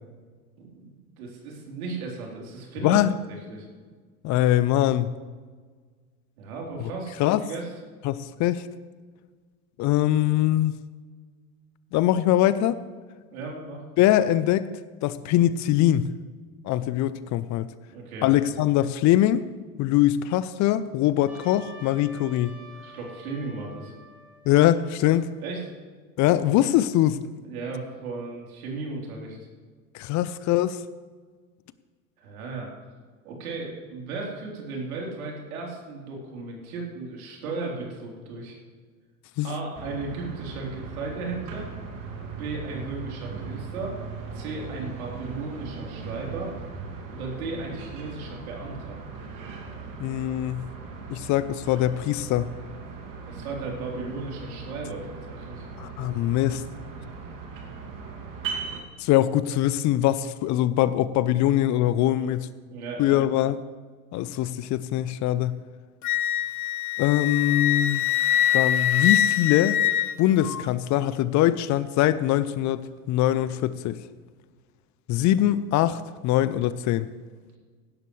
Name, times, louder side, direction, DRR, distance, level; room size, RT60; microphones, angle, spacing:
voice 1, 0.6-3.0 3.3-3.7 6.4-7.7 13.3-13.8 17.9-18.5 22.8-23.9 25.4-25.6 27.4-29.4 32.2-32.7 33.2-38.6 39.4-41.7 42.4-44.0 44.3-46.5 47.1-49.0 53.3-55.7 62.1-63.2, right 3 dB, 75° right, -1 dB, 3.8 m, -35 dB
voice 2, 2.8-3.1 4.2-5.1 7.2-7.4 8.0-8.7 9.8-10.8 11.9-12.8 14.0-14.7 15.0-16.1 16.6-17.7 18.2-19.4 19.8-22.5 24.5-25.3 26.2-27.2 29.9-30.8 39.4-39.6 50.0-50.7 51.1-52.5 55.8-56.6 59.0-62.5 63.0-63.6 64.1-65.6 67.0-68.0 68.5-69.8 70.2-74.0 75.1-77.1, left 13 dB, 40° left, 15 dB, 0.6 m, -22 dB
Trumpet, 21.3-25.7, right 1 dB, 5° right, 3.8 m, -49 dB
sound 1, 39.7-58.8, right 5 dB, 45° right, 2.5 m, -38 dB
Wind instrument woodwind instrument, 66.0-70.6, left 11 dB, 85° left, 0.6 m, -24 dB
16.5 x 12.0 x 3.3 m, 1.5 s
hypercardioid pair, 80°, 43 cm